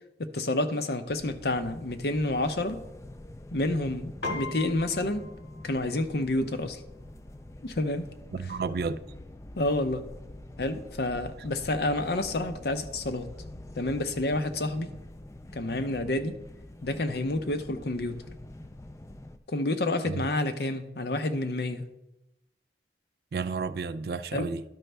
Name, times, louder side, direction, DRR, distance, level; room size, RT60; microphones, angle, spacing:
voice 1, 0.2-2.8 3.5-5.3 5.6-6.8 7.6-8.1 9.6-10.1 10.6-13.3 13.8-14.9 15.5-16.4 16.8-18.2 19.5-21.9 24.3-24.5, left 2 dB, 65° left, 0.7 m, -29 dB
sound 1, 1.1-19.4, left 1 dB, 15° left, 0.4 m, -45 dB
Piano, 4.2-13.8, left 3 dB, 80° left, 1.8 m, -45 dB
voice 2, 8.3-9.0 20.1-20.3 23.3-24.6, right 4 dB, 60° right, 0.3 m, -31 dB
12.0 x 5.2 x 3.4 m
head